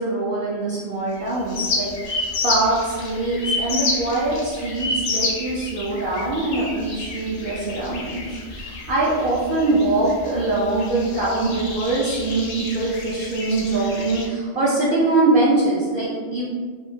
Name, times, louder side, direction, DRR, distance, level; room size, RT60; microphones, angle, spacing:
voice 1, 0.0-8.3 8.5-16.4, right 2 dB, 60° right, -7 dB, 0.6 m, -23 dB
sound 1, 1.2-14.3, left 3 dB, 60° left, 0.7 m, -30 dB
2.7 x 2.4 x 2.6 m, 1.5 s
omnidirectional pair, 1.2 m